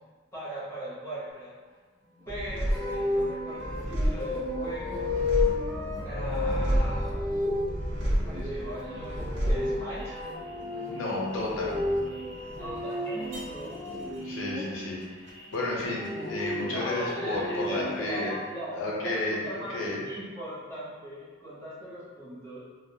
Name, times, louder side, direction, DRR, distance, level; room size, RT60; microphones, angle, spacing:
voice 1, 0.3-1.5 2.3-5.1 6.0-7.3 8.0-10.1 12.5-13.7 14.2-14.3 16.7-18.7 19.0-19.8 20.0-22.6, right 1 dB, 15° left, -11 dB, 0.7 m, -39 dB
sound 1, 2.3-17.2 17.4-18.2, equal, 60° right, 0.4 m, -33 dB
sound 2, 2.7-14.6 15.7-18.0, left 2 dB, 85° right, 0.7 m, -33 dB
voice 2, 10.9-11.7 14.2-18.3 18.7-20.0, left 2 dB, 85° left, -4 dB, 0.6 m, -32 dB
2.3 x 2.1 x 2.7 m, 1.4 s
head